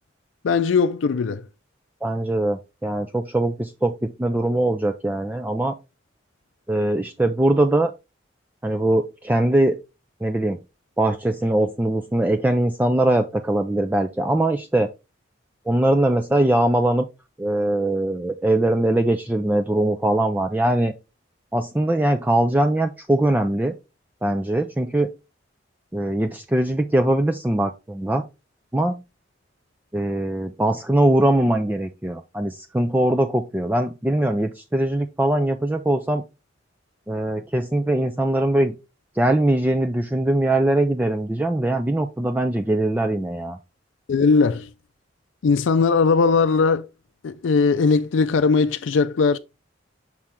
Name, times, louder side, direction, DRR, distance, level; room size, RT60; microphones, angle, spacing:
voice 1, 0.4-1.4 44.1-44.7 45.4-46.9 47.2-49.4, left 4 dB, 90° left, 0.4 m, -19 dB
voice 2, 2.0-5.8 6.7-7.9 8.6-9.8 10.2-10.6 11.0-14.9 15.7-17.0 17.4-20.9 21.5-23.7 24.2-25.1 25.9-28.2 28.7-29.0 29.9-36.2 37.1-38.7 39.2-43.6, right 1 dB, 10° right, 0.4 m, -21 dB
6.1 x 4.3 x 3.6 m
head